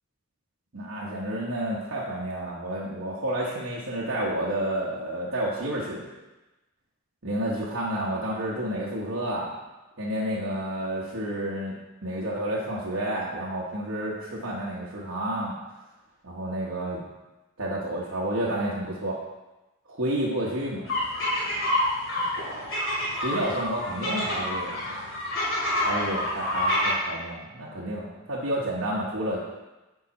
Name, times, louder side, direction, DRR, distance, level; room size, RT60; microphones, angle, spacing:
voice 1, 0.7-6.1 7.2-9.5 10.0-11.8 12.0-15.6 16.2-17.0 17.6-19.2 19.9-20.8 23.2-24.8 25.8-29.4, right 1 dB, 65° right, -7 dB, 1.1 m, -30 dB
sound 1, 20.8-26.9, left 1 dB, 70° left, 2.5 m, -28 dB
7.3 x 4.8 x 4.2 m, 1.1 s
head